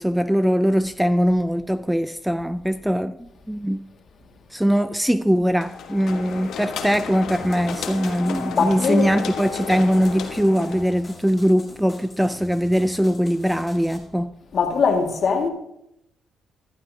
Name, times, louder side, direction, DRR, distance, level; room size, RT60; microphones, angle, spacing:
voice 1, 0.0-3.8 4.5-14.3, equal, 5° right, 0.4 m, -21 dB
sound 1, 5.6-11.1, left 6 dB, 75° left, 1.3 m, -33 dB
sound 2, 7.3-14.0, left 2 dB, 20° left, 3.9 m, -44 dB
voice 2, 8.5-9.1 14.5-15.5, left 5 dB, 55° left, 1.9 m, -21 dB
15.0 x 12.5 x 2.8 m
cardioid pair, 90°, 0 cm